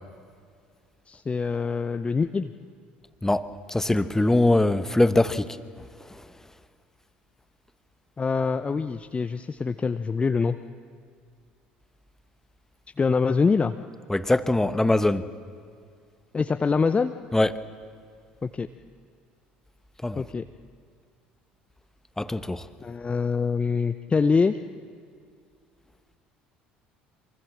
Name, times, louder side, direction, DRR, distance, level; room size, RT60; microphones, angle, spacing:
voice 1, 1.1-2.5 8.2-10.6 13.0-13.7 16.3-17.1 18.4-18.7 20.2-20.4 22.8-24.6, left 5 dB, 25° left, 9 dB, 0.7 m, -24 dB
voice 2, 3.2-6.3 14.1-15.3 17.3-17.6 20.0-20.2 22.2-22.7, left 2 dB, 10° left, 12 dB, 1.2 m, -23 dB
24.5 x 24.0 x 7.4 m, 2.2 s
figure-of-eight pair, 60°, 5 cm